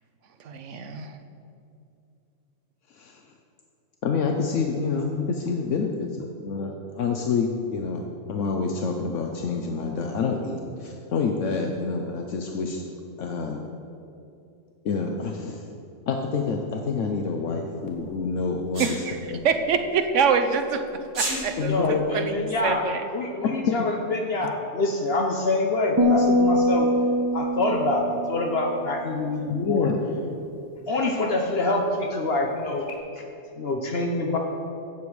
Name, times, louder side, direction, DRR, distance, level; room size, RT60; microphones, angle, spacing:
voice 1, 0.4-1.1 18.8-19.2 19.4-20.8 21.1-23.1 24.4-24.5, right 6 dB, 75° right, 8 dB, 1.1 m, -25 dB
voice 2, 4.0-6.1 6.4-8.0 8.3-12.8 13.2-13.6 14.8-15.6 16.1-19.0 19.3-19.4 21.6-22.0 23.7-23.8 29.5-30.2, left 5 dB, 75° left, 2 dB, 1.1 m, -27 dB
Sneeze, 18.7-19.0 21.1-21.4, right 2 dB, 55° right, 2.3 m, -27 dB
voice 3, 21.6-26.9 27.3-29.9 30.9-32.9 33.6-34.4, left 2 dB, 55° left, 2 dB, 1.1 m, -26 dB
sound 1, 26.0-29.4, equal, 15° right, 1.3 m, -24 dB
16.5 x 7.0 x 4.8 m, 2.7 s
omnidirectional pair, 1.3 m